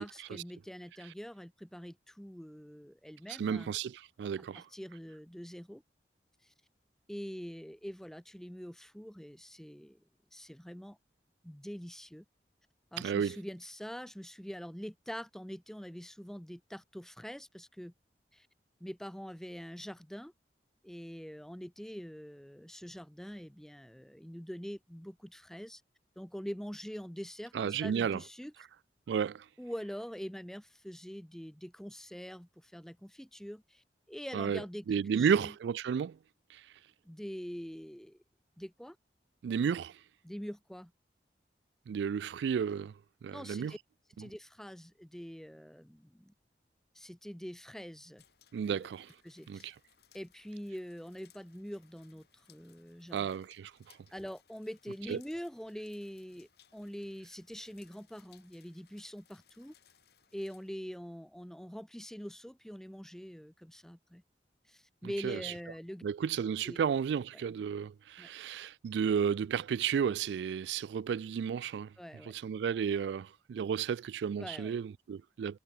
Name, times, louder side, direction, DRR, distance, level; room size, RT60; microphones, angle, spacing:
voice 1, 0.0-3.8 4.4-5.8 6.4-6.5 7.1-10.0 10.3-11.0 11.4-12.2 12.9-17.9 18.3-18.5 18.8-20.3 20.8-25.8 26.2-28.5 29.6-35.5 37.0-38.2 38.6-39.0 40.2-40.9 43.3-43.8 44.2-46.3 46.9-48.2 48.7-48.9 49.2-49.7 50.1-53.3 54.1-59.7 60.3-64.2 64.7-66.0 66.6-66.8 67.3-67.4 68.2-68.3 72.0-72.3 74.4-74.7, equal, 5° left, 0.5 m, -44 dB
voice 2, 3.3-4.7 13.0-13.4 27.5-28.2 29.1-29.5 34.3-36.2 36.5-36.6 39.4-40.0 41.9-42.9 43.2-43.7 48.5-49.1 49.5-49.7 53.1-53.7 55.1-55.2 65.2-65.5 66.0-71.9 72.2-75.6, right 7 dB, 85° right, 0.3 m, -33 dB
sound 1, 48.2-60.7, left 9 dB, 70° left, 3.5 m, -67 dB
head